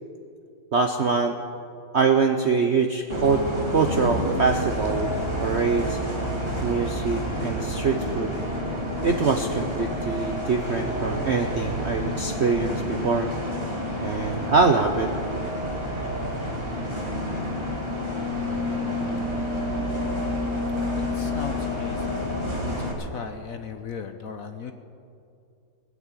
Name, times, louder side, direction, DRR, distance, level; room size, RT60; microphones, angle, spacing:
voice 1, 0.7-1.4 1.9-3.4 3.7-5.1 5.4-6.0 6.6-8.3 9.0-13.3 14.0-15.1, right 4 dB, 60° right, 5 dB, 0.7 m, -24 dB
Bus, 3.1-22.9, left 1 dB, 15° right, 2.0 m, -29 dB
voice 2, 20.9-22.3 22.6-24.7, left 6 dB, 60° left, 7 dB, 1.0 m, -37 dB
19.0 x 8.8 x 8.4 m, 2.5 s
omnidirectional pair, 2.1 m